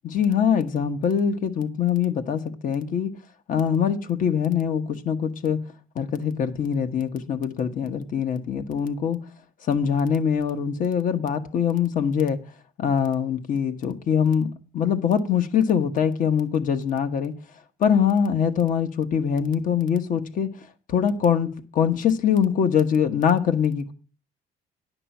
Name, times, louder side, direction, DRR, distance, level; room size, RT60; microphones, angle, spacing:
voice 1, 0.0-3.1 3.5-5.6 5.9-9.2 9.7-12.4 12.8-14.5 14.7-17.3 17.8-20.5 20.9-23.9, left 7 dB, 50° left, 1.2 m, -23 dB
10.5 x 6.1 x 5.9 m
cardioid pair, 110°, 17 cm